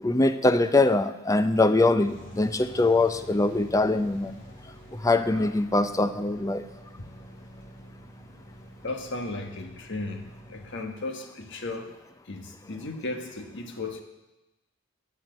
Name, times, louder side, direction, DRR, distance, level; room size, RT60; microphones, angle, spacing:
voice 1, 0.0-4.4 4.9-6.6, left 2 dB, 15° left, 11 dB, 0.5 m, -23 dB
sound 1, 2.0-10.7, equal, 40° left, 3.9 m, -47 dB
voice 2, 8.8-11.9 12.3-14.0, left 2 dB, 60° left, 5 dB, 1.5 m, -35 dB
10.5 x 9.4 x 7.8 m, 1.0 s
head